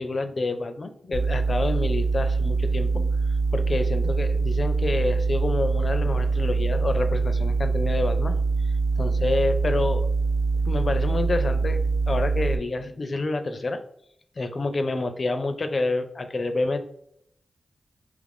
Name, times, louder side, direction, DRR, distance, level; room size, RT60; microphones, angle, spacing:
voice 1, 0.0-3.1 3.5-8.4 9.0-10.1 10.7-13.8 14.4-16.9, left 2 dB, 50° left, 8 dB, 0.4 m, -28 dB
sound 1, 1.1-12.6, right 4 dB, 70° right, 0.8 m, -24 dB
3.0 x 2.5 x 3.4 m, 0.67 s
cardioid pair, 55°, 0 cm